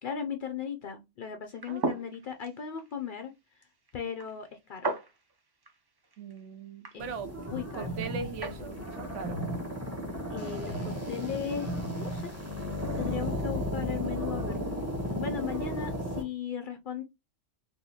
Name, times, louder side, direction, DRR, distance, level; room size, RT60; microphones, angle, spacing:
voice 1, 0.0-3.3 3.9-4.9 6.9-7.1 7.5-8.0 10.3-12.3 13.0-14.6 15.2-17.0, left 8 dB, 60° left, 0.5 m, -37 dB
sound 1, 1.4-8.6, right 2 dB, 35° right, 0.4 m, -39 dB
voice 2, 1.7-2.0 6.2-7.3 7.7-9.4, right 5 dB, 75° right, 1.0 m, -40 dB
sound 2, 7.0-16.2, equal, 15° right, 1.3 m, -34 dB
3.9 x 2.7 x 2.8 m
omnidirectional pair, 1.2 m